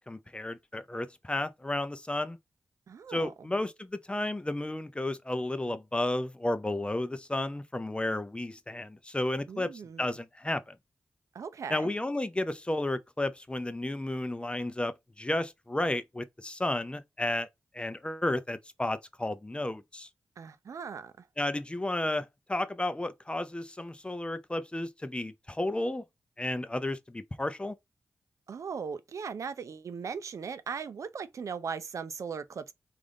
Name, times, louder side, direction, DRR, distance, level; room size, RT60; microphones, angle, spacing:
voice 1, 0.0-2.4 3.1-10.8 11.7-17.5 17.7-20.1 21.4-26.0 26.4-27.7, left 1 dB, 20° left, 0.5 m, -32 dB
voice 2, 2.9-3.3 9.5-10.1 11.3-11.9 20.4-21.3 28.5-32.7, right 6 dB, 70° right, 0.4 m, -38 dB
3.4 x 2.5 x 3.7 m
cardioid pair, 45°, 6 cm